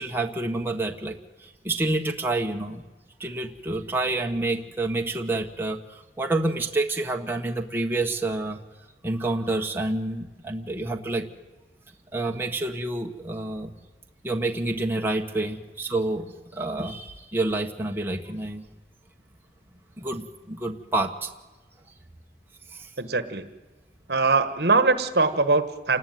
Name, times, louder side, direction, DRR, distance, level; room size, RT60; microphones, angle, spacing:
voice 1, 0.0-2.8 3.2-8.6 9.0-11.3 12.1-13.7 14.2-18.6 20.0-21.3 22.7-22.9, right 2 dB, 10° right, 2 dB, 1.3 m, -28 dB
voice 2, 23.0-23.5 24.1-26.0, right 3 dB, 65° right, 11 dB, 1.4 m, -22 dB
28.0 x 19.5 x 9.3 m, 1.2 s
head